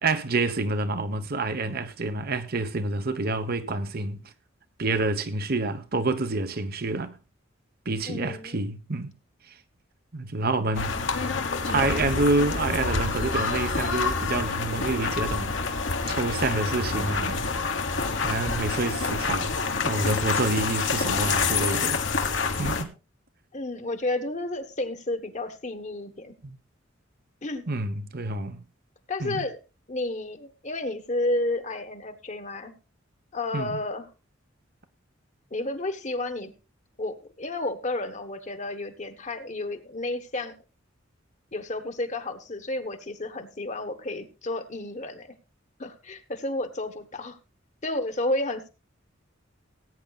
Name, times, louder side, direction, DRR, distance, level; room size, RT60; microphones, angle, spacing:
voice 1, 0.0-4.2 4.8-7.2 7.8-9.1 10.1-17.5 18.2-19.5 19.8-22.0 22.6-22.9 26.4-26.6 27.7-28.6 29.2-29.4 33.5-33.8, right 3 dB, 50° right, 1.1 m, -28 dB
voice 2, 8.1-8.6 23.5-26.3 27.4-27.6 29.1-29.6 29.9-32.7 33.3-34.1 35.5-36.5 37.0-40.6 41.5-45.3 45.8-47.4 47.8-48.7, left 2 dB, 35° left, 1.3 m, -31 dB
sound 1, 10.7-22.8, left 4 dB, 70° left, 1.6 m, -27 dB
19.0 x 9.1 x 2.4 m
head